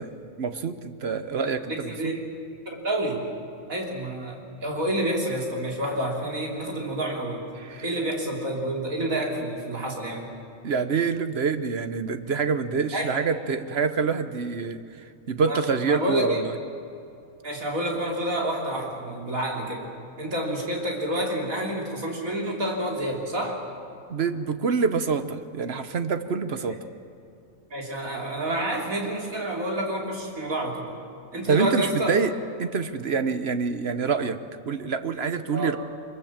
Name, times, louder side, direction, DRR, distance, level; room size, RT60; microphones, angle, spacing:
voice 1, 0.0-2.1 7.6-7.9 10.6-16.5 24.1-26.8 31.5-32.3 32.6-35.8, right 5 dB, 50° right, 10 dB, 1.1 m, -26 dB
voice 2, 1.3-2.2 2.7-3.2 3.7-7.4 7.8-10.3 12.9-13.1 15.5-16.4 17.4-19.9 20.2-23.6 26.7-26.8 27.7-30.9 31.3-32.2 35.5-35.7, right 1 dB, 80° right, -1 dB, 3.9 m, -29 dB
24.0 x 22.5 x 7.4 m, 2.6 s
omnidirectional pair, 1.4 m